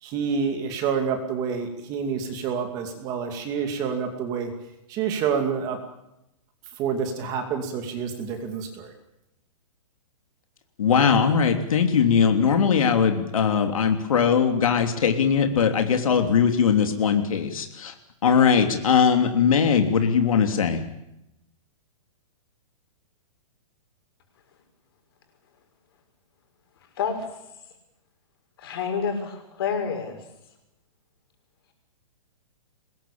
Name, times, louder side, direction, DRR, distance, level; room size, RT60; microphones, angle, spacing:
voice 1, 0.0-4.5 4.9-5.8 6.8-8.9, right 6 dB, 20° right, 5 dB, 2.6 m, -28 dB
voice 2, 10.8-17.9 18.2-20.8, left 6 dB, 80° left, 5 dB, 3.1 m, -20 dB
voice 3, 28.6-30.2, left 6 dB, 45° left, 4 dB, 6.6 m, -28 dB
24.0 x 21.0 x 8.9 m, 0.87 s
hypercardioid pair, 175°, 18 cm